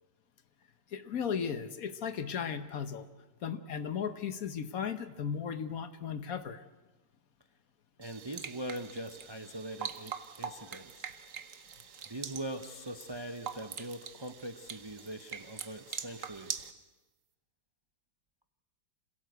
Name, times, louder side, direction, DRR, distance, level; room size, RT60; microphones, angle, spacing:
voice 1, 0.9-3.1 3.4-6.6, left 7 dB, 55° left, 11 dB, 1.4 m, -36 dB
voice 2, 8.0-11.1 12.1-16.6, right 1 dB, 35° right, 8 dB, 0.4 m, -42 dB
sound 1, 8.0-16.7, right 7 dB, 55° right, 1.2 m, -44 dB
26.5 x 17.0 x 8.0 m, 1.1 s
omnidirectional pair, 1.9 m